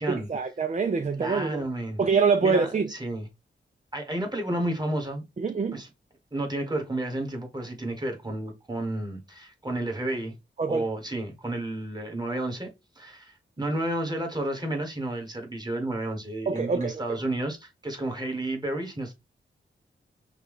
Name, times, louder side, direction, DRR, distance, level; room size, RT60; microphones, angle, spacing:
voice 1, 0.1-1.6 2.0-2.9 5.4-5.8 10.6-10.8 16.5-16.9, right 5 dB, 35° right, 0.6 m, -25 dB
voice 2, 1.2-2.0 2.4-3.3 3.9-5.2 5.7-5.9 6.3-10.3 10.7-12.7 13.0-19.1, right 1 dB, 20° right, 1.7 m, -31 dB
5.8 x 2.4 x 3.6 m
cardioid pair, 60°, 20 cm